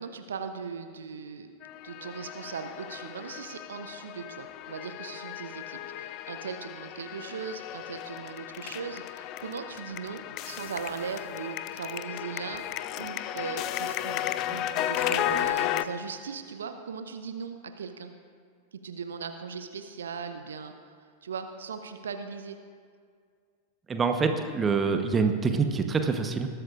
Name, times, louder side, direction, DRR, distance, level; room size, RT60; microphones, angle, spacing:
voice 1, 0.0-1.5 1.8-12.6 13.0-18.1 18.8-20.9 21.2-22.6, right 6 dB, 65° right, 8 dB, 0.7 m, -38 dB
sound 1, 1.6-15.8, left 13 dB, 40° left, 0.4 m, -34 dB
voice 2, 23.9-26.5, right 5 dB, 20° right, 6 dB, 1.0 m, -25 dB
20.5 x 12.5 x 2.5 m, 2.1 s
figure-of-eight pair, 90°, 0 cm